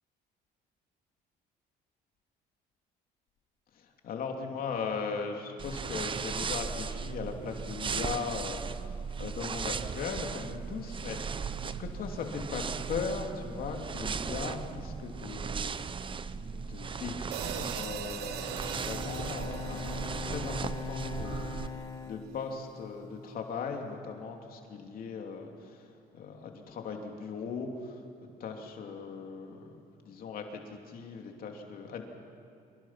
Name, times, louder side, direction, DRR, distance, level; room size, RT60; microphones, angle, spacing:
voice 1, 3.7-16.2 16.5-21.5 22.0-29.7 30.0-32.0, left 5 dB, 60° left, 2 dB, 3.0 m, -39 dB
sound 1, 5.6-21.7, right 5 dB, 30° right, 0.8 m, -37 dB
sound 2, 17.3-21.7, right 11 dB, 80° right, 1.1 m, -42 dB
Bowed string instrument, 17.9-23.3, left 6 dB, 20° left, 1.3 m, -42 dB
27.0 x 24.0 x 5.9 m, 2.6 s
cardioid pair, 110°, 17 cm